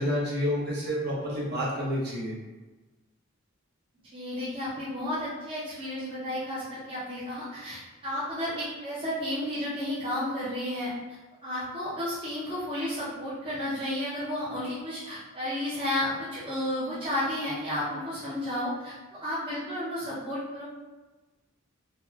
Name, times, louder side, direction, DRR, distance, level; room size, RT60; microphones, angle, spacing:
voice 1, 0.0-2.3, equal, 50° right, -6 dB, 1.0 m, -29 dB
voice 2, 4.1-10.9 11.4-20.6, left 1 dB, 25° right, -10 dB, 0.7 m, -32 dB
4.0 x 2.3 x 2.8 m, 1.2 s
head